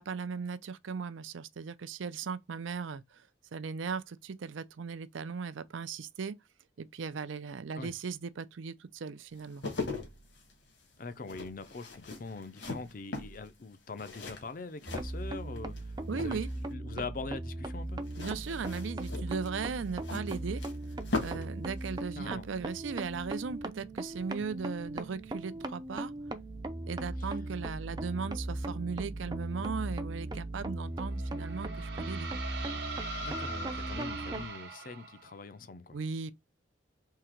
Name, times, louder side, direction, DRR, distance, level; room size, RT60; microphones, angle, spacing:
voice 1, 0.0-3.3 3.5-6.3 6.8-9.6 16.1-16.5 18.2-20.6 21.2-26.1 26.9-32.3 35.9-36.3, right 5 dB, 90° right, 0.5 m, -37 dB
sound 1, 9.3-15.8 16.1-16.7 18.0-21.5 21.8-22.0, left 3 dB, 70° left, 1.4 m, -40 dB
voice 2, 11.0-16.4 16.7-18.0 22.2-22.4 24.4-24.5 27.2-27.4 33.2-36.0, left 3 dB, 45° left, 0.5 m, -43 dB
sound 2, 14.9-34.5, right 1 dB, 20° right, 0.4 m, -38 dB
sound 3, 31.1-35.4, right 3 dB, 60° right, 1.0 m, -41 dB
3.7 x 2.8 x 4.4 m
head